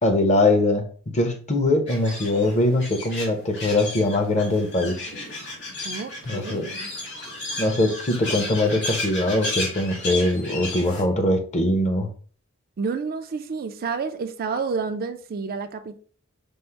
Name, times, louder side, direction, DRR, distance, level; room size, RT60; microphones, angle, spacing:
voice 1, 0.0-5.0 6.3-6.7 7.6-12.1, left 1 dB, 35° left, 0.7 m, -22 dB
sound 1, 1.9-11.0, left 2 dB, 60° left, 1.9 m, -33 dB
voice 2, 5.8-6.9 12.8-16.0, right 5 dB, 45° right, 0.4 m, -30 dB
5.3 x 2.0 x 4.4 m
head